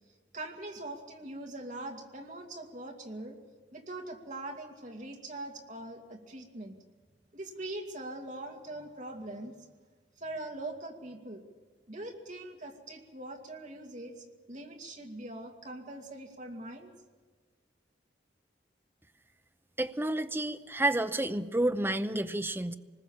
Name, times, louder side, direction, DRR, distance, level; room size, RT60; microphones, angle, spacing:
voice 1, 0.3-3.4 3.7-6.8 7.3-9.5 10.2-11.5 11.9-16.9, right 2 dB, 45° right, 2 dB, 2.2 m, -42 dB
voice 2, 19.8-22.7, right 1 dB, 10° right, 9 dB, 0.7 m, -30 dB
25.0 x 20.0 x 7.3 m, 1.4 s
head